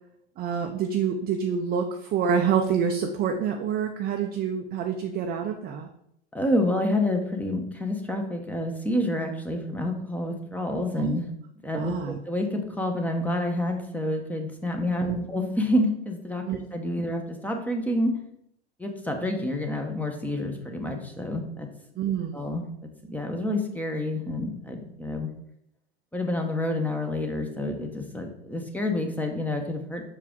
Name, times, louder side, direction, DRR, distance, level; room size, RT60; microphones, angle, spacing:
voice 1, 0.4-5.9 11.0-11.2 11.7-12.2 15.0-15.2 16.5-16.6 22.0-22.4, right 7 dB, 30° right, 4 dB, 0.6 m, -27 dB
voice 2, 6.3-11.3 11.6-18.2 18.8-21.7 22.3-25.3 26.1-30.1, left 1 dB, 5° left, 3 dB, 0.9 m, -28 dB
5.9 x 4.6 x 3.7 m, 0.74 s
hypercardioid pair, 105°, 33 cm